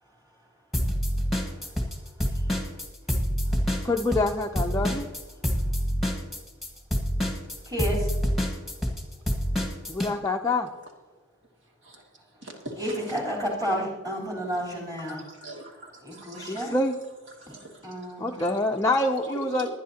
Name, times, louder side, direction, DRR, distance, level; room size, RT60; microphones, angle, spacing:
sound 1, 0.7-10.1, equal, ahead, 1.6 m, -26 dB
voice 1, 3.8-5.1 9.9-10.7 16.4-16.9 18.2-19.7, left 2 dB, 15° left, 1 dB, 0.5 m, -26 dB
voice 2, 7.7-8.1 12.8-15.2 16.0-16.7 17.5-17.6 17.8-18.4, equal, 20° right, -4 dB, 3.7 m, -31 dB
voice 3, 12.4-13.2 13.7-13.8 15.0-16.8 17.4-18.1 18.7-18.8 19.3-19.7, right 1 dB, 60° right, 0 dB, 2.4 m, -42 dB
21.0 x 10.0 x 2.9 m, 1.2 s
head